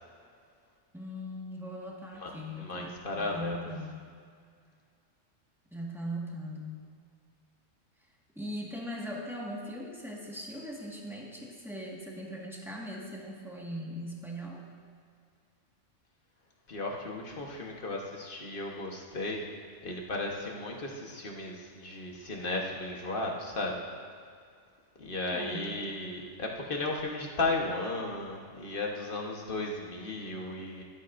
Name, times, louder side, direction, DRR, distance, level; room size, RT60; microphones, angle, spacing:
voice 1, 0.9-4.1 5.7-6.8 8.3-14.6 25.3-25.8, equal, ahead, -4 dB, 1.7 m, -40 dB
voice 2, 2.2-3.6 16.7-19.4 19.8-23.9 25.0-30.8, left 2 dB, 45° left, 0 dB, 1.5 m, -35 dB
16.5 x 12.0 x 2.6 m, 2.1 s
omnidirectional pair, 1.2 m